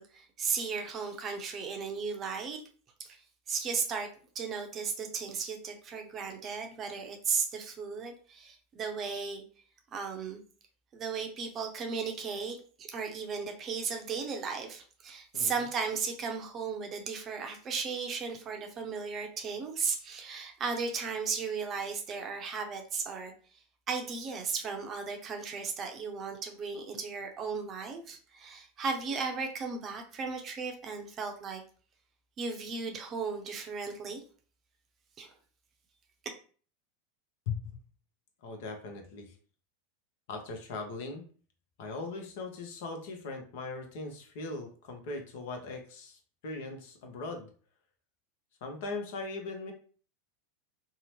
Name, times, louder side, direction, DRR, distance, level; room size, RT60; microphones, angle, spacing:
voice 1, 0.0-2.6 3.0-3.2 3.5-4.1 4.3-9.4 9.9-10.4 10.9-23.3 23.9-31.6 32.4-34.2 35.2-35.3, right 5 dB, 35° right, 4 dB, 0.6 m, -35 dB
voice 2, 37.5-37.8 38.4-39.3 40.3-41.2 41.8-47.5 48.6-49.7, left 3 dB, 65° left, 4 dB, 0.7 m, -39 dB
2.8 x 2.0 x 3.0 m, 0.41 s
hypercardioid pair, 90°, 0 cm